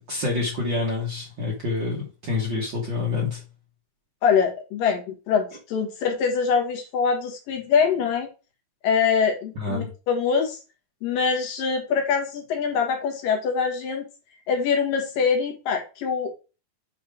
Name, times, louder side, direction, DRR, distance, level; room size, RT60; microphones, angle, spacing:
voice 1, 0.0-3.4 9.6-9.9, left 3 dB, 50° right, 1.4 m, -27 dB
voice 2, 4.2-8.3 8.8-10.6 11.0-14.1 14.5-16.3, left 6 dB, 80° left, 3.2 m, -24 dB
8.3 x 3.5 x 4.7 m
omnidirectional pair, 3.9 m